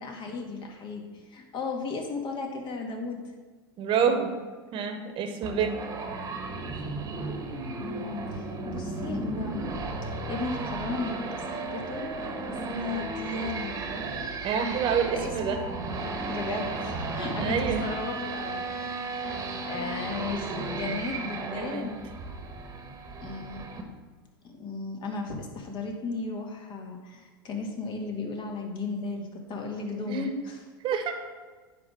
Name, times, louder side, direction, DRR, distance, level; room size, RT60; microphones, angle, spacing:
voice 1, 0.0-3.2 5.9-6.2 7.8-9.7 10.0-12.4 12.7-13.7 15.1-15.6 16.3-19.4 19.6-22.0 23.2-23.6 24.4-30.6 30.9-31.1, left 3 dB, 40° left, 2 dB, 1.8 m, -35 dB
voice 2, 3.8-4.3 4.7-5.8 14.4-15.6 17.4-17.8 21.5-21.8 30.1-30.3 30.8-31.1, right 6 dB, 40° right, 6 dB, 1.1 m, -27 dB
sound 1, 5.4-23.8, right 3 dB, 25° right, 1.3 m, -34 dB
9.7 x 3.6 x 6.1 m, 1.4 s
hypercardioid pair, 95°, 13 cm